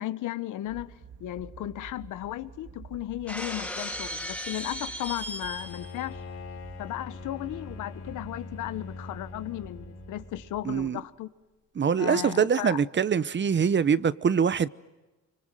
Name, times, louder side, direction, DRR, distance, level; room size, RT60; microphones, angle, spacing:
voice 1, 0.0-6.2 6.8-11.3 12.0-12.8, left 14 dB, 85° left, 1.4 m, -35 dB
sound 1, 0.6-10.9, right 6 dB, 70° right, 3.6 m, -50 dB
Shatter, 3.3-6.0, equal, 5° left, 3.4 m, -36 dB
Bowed string instrument, 5.4-10.8, left 3 dB, 55° left, 4.2 m, -43 dB
voice 2, 10.6-11.0 11.8-14.7, right 6 dB, 40° right, 0.9 m, -24 dB
25.5 x 25.0 x 9.2 m
cardioid pair, 90°, 30 cm